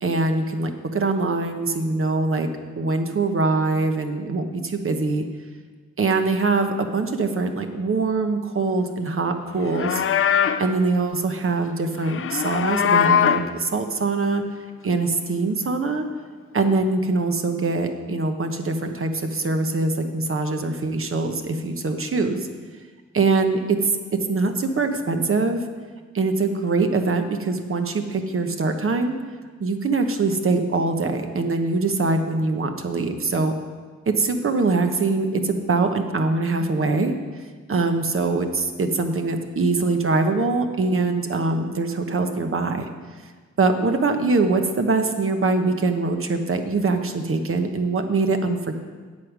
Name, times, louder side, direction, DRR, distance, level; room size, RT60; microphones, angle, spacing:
voice 1, 0.0-2.5 2.8-5.2 6.0-10.0 10.6-14.4 14.8-16.0 16.5-22.5 23.1-25.6 26.1-29.2 29.6-33.5 34.1-37.1 37.7-42.9 43.6-48.7, right 3 dB, 45° right, 6 dB, 1.1 m, -23 dB
Livestock farm animals working animals, 9.6-10.7 12.0-13.5, left 8 dB, 45° left, 0.5 m, -21 dB
8.6 x 8.1 x 6.1 m, 1.5 s
cardioid pair, 85°, 29 cm